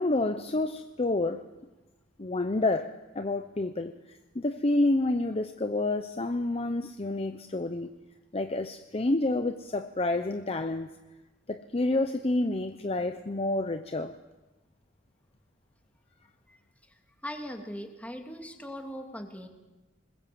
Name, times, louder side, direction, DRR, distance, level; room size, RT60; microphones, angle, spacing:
voice 1, 0.0-1.4 2.2-7.9 8.3-10.9 11.5-14.1, left 2 dB, 30° left, 8 dB, 0.8 m, -29 dB
voice 2, 17.2-19.5, equal, 10° left, 4 dB, 2.4 m, -40 dB
25.5 x 21.0 x 7.6 m, 1.1 s
head